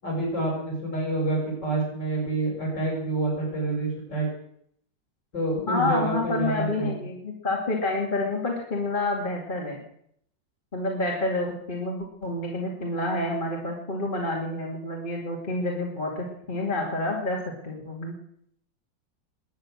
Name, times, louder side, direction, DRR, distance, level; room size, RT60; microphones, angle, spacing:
voice 1, 0.0-4.3 5.3-6.9, right 2 dB, 70° left, -1 dB, 6.6 m, -28 dB
voice 2, 5.7-9.8 10.7-17.4 17.6-18.1, left 2 dB, 25° left, -2 dB, 2.6 m, -28 dB
21.5 x 9.6 x 6.3 m, 0.69 s
omnidirectional pair, 2.0 m